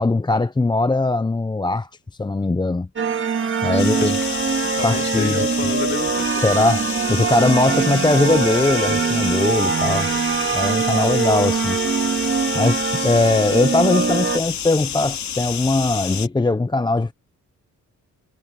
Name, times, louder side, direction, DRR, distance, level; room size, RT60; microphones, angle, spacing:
voice 1, 0.0-1.9 2.2-2.9 3.6-4.2 4.8-5.4 6.4-10.1 10.5-11.8 12.5-17.1, left 2 dB, 15° left, 0.7 m, -20 dB
sound 1, 3.0-14.4, right 5 dB, 40° right, 2.0 m, -22 dB
voice 2, 3.6-4.2 4.8-6.5 10.9-11.2, left 5 dB, 35° left, 2.0 m, -31 dB
sound 2, 3.8-16.3, left 8 dB, 65° left, 2.6 m, -29 dB
cardioid pair, 90°, 31 cm